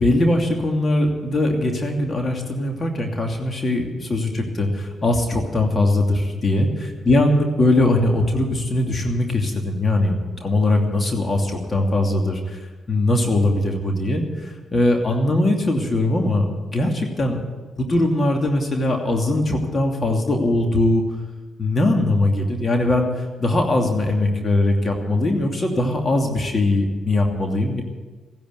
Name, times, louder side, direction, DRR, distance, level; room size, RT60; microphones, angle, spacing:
voice 1, 0.0-12.6 12.9-16.5 16.7-17.4 17.8-21.0 21.6-27.8, left 1 dB, 40° left, 2 dB, 2.8 m, -21 dB
16.0 x 10.5 x 8.3 m, 1.3 s
supercardioid pair, 50°, 0 cm